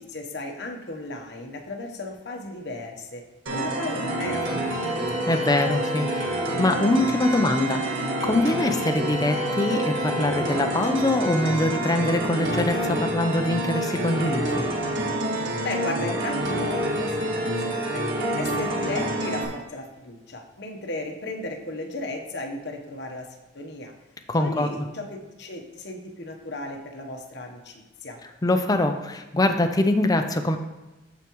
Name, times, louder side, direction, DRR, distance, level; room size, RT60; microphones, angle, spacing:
voice 1, 0.0-3.2 3.5-4.9 15.6-18.0 18.4-23.3 23.5-23.9 24.4-28.2, left 2 dB, 60° left, 2 dB, 1.1 m, -35 dB
sound 1, 3.5-19.5, right 1 dB, 75° right, 1.8 m, -27 dB
voice 2, 5.3-14.7 24.3-24.9 28.4-30.6, left 1 dB, 20° left, 6 dB, 0.5 m, -24 dB
14.0 x 4.7 x 3.1 m, 1.1 s
head